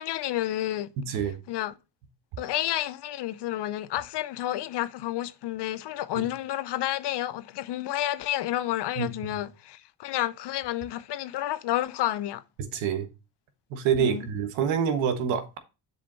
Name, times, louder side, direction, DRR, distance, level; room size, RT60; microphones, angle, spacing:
voice 1, 0.0-0.9 1.5-1.7 2.4-12.4 14.0-14.3, left 13 dB, 55° left, 0.7 m, -30 dB
voice 2, 1.0-1.4 6.2-6.3 9.0-9.3 12.7-13.1 13.7-15.6, right 7 dB, 75° right, 1.3 m, -27 dB
6.9 x 5.0 x 4.0 m
hypercardioid pair, 55°, 48 cm